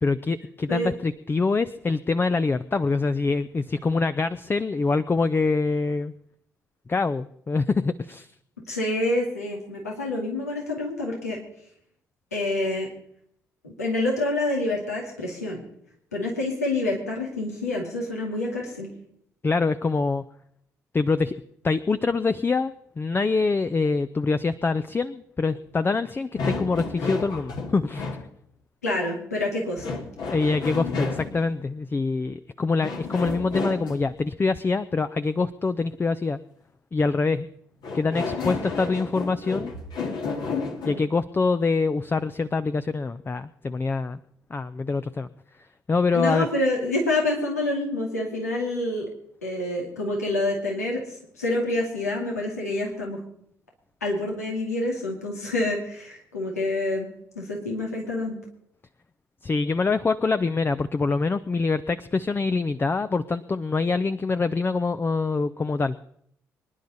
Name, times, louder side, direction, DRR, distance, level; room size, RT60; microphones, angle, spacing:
voice 1, 0.0-6.1 6.9-8.3 19.4-20.2 20.9-21.4 21.6-28.1 30.3-36.4 36.9-37.5 37.9-39.7 40.8-44.2 44.5-45.3 45.9-46.5 59.4-65.9, left 4 dB, 25° left, 12 dB, 0.6 m, -25 dB
voice 2, 8.7-11.4 12.3-12.9 13.6-15.6 16.1-18.9 28.8-30.0 46.1-49.1 49.4-53.2 54.0-57.1 57.4-58.4, left 2 dB, 90° left, -1 dB, 2.3 m, -27 dB
sound 1, 26.4-28.2 29.8-31.5 32.8-34.1 37.8-41.1, left 4 dB, 60° left, 2.1 m, -31 dB
25.0 x 10.5 x 4.1 m, 0.68 s
figure-of-eight pair, 45°, 8 cm